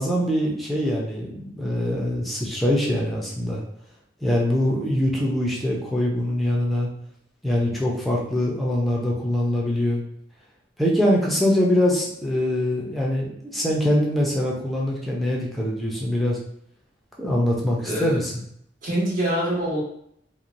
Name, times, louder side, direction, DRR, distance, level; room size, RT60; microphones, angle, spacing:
voice 1, 0.0-3.6 4.2-6.9 7.4-10.0 10.8-16.4 17.2-18.2, left 1 dB, ahead, -4 dB, 0.5 m, -23 dB
voice 2, 17.8-18.2 18.8-19.8, right 1 dB, 45° right, -5 dB, 1.1 m, -24 dB
3.0 x 2.1 x 2.5 m, 0.70 s
head